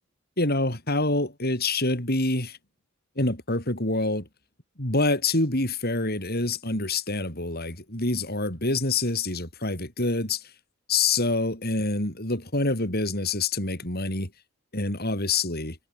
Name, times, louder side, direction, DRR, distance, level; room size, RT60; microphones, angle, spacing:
voice 1, 0.4-2.6 3.2-4.3 4.8-10.5 10.9-14.3 14.7-15.8, left 2 dB, 45° left, 7.3 m, -26 dB
head